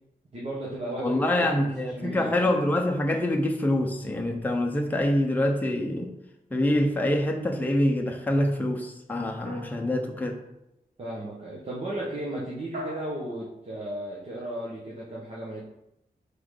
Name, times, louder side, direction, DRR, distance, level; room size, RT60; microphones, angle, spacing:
voice 1, 0.3-2.5 11.0-15.6, right 1 dB, 45° right, -6 dB, 1.3 m, -35 dB
voice 2, 1.0-6.1 6.5-10.4, left 1 dB, 10° left, 2 dB, 0.7 m, -25 dB
sound 1, 9.4-10.5 12.7-13.6, equal, 75° right, 1.2 m, -41 dB
4.8 x 3.9 x 5.0 m, 0.83 s
wide cardioid pair, 120°, 15 cm